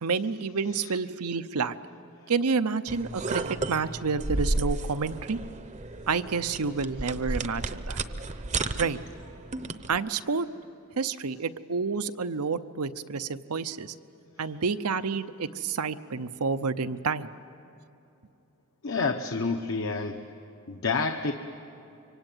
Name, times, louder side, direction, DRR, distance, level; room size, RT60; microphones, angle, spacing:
voice 1, 0.0-1.7 2.3-5.4 6.1-8.0 8.8-9.0 9.9-10.5 11.0-13.9 14.4-17.3, right 5 dB, 85° right, 11 dB, 0.8 m, -29 dB
sound 1, 2.9-10.0, right 2 dB, 30° right, 0.8 m, -33 dB
voice 2, 18.8-20.2 20.7-21.3, left 4 dB, 60° left, 5 dB, 1.0 m, -28 dB
25.5 x 24.0 x 9.1 m, 2.7 s
head